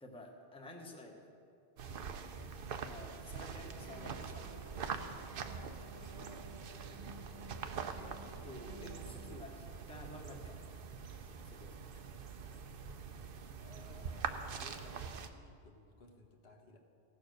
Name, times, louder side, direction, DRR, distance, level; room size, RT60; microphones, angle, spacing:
voice 1, 0.0-1.2 2.0-2.1 2.4-2.5 2.9-5.1 7.7-10.7 11.4-12.0, left 1 dB, 5° left, 2 dB, 1.0 m, -52 dB
sound 1, 1.8-15.3, right 6 dB, 60° right, 0.8 m, -44 dB
voice 2, 2.4-2.7 5.4-7.2 13.6-16.8, left 2 dB, 65° left, 2 dB, 1.4 m, -59 dB
sound 2, 3.8-9.4, right 1 dB, 30° right, 0.6 m, -54 dB
16.0 x 6.9 x 6.4 m, 2.5 s
omnidirectional pair, 1.1 m